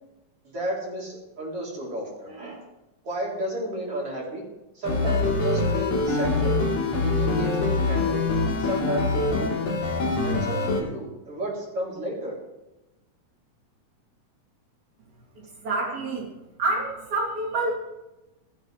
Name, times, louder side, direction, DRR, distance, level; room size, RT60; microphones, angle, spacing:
voice 1, 0.4-2.6 3.0-4.4 4.7-6.6 7.0-8.3 8.6-9.6 10.2-12.3, right 1 dB, 40° right, -4 dB, 4.6 m, -32 dB
sound 1, 4.8-10.8, left 3 dB, 50° left, 4.0 m, -24 dB
voice 2, 15.6-16.3 16.6-17.8, right 2 dB, 60° right, -2 dB, 4.3 m, -27 dB
16.5 x 14.0 x 3.4 m, 1.0 s
omnidirectional pair, 3.9 m